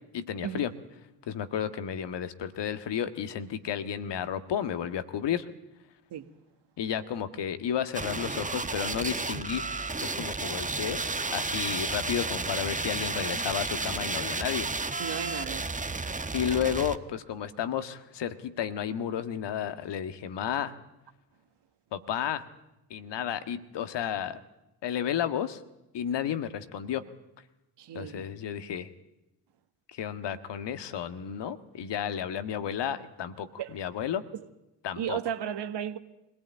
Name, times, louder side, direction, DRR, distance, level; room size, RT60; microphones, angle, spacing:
voice 1, 0.1-0.7 1.3-5.5 6.8-9.7 10.0-14.8 16.3-20.7 21.9-22.4 22.9-24.4 24.8-25.6 25.9-27.0 27.9-28.9 29.9-34.2 34.8-35.2, left 9 dB, 55° left, 1.7 m, -32 dB
sound 1, 7.9-17.0, right 3 dB, 15° right, 1.4 m, -32 dB
voice 2, 15.0-15.7 27.8-28.2 33.6-33.7 34.3-34.4 35.0-36.0, right 9 dB, 55° right, 1.7 m, -34 dB
23.5 x 17.5 x 9.1 m
figure-of-eight pair, 40°, 49 cm